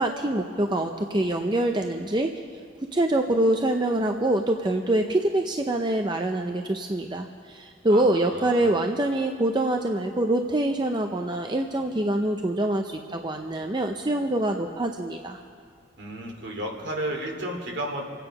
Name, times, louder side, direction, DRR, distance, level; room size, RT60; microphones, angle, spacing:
voice 1, 0.0-2.3 2.9-15.4, right 1 dB, 25° right, 4 dB, 0.5 m, -25 dB
voice 2, 7.9-8.8 16.0-18.0, right 1 dB, 65° right, 1 dB, 2.5 m, -33 dB
27.0 x 9.1 x 5.4 m, 2.1 s
head